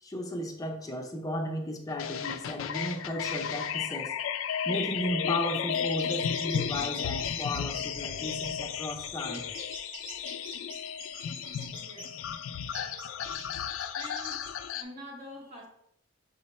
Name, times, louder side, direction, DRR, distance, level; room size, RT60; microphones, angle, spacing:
voice 1, 0.0-4.1 4.6-9.5, left 1 dB, 20° left, 2 dB, 0.5 m, -34 dB
sound 1, 2.0-14.8, left 8 dB, 85° left, 0.3 m, -34 dB
sound 2, 5.8-12.1 12.7-14.5, right 2 dB, 85° right, 1.2 m, -45 dB
voice 2, 11.8-12.2 14.0-15.7, left 1 dB, 35° right, -2 dB, 0.8 m, -46 dB
6.1 x 2.1 x 4.1 m, 0.71 s
head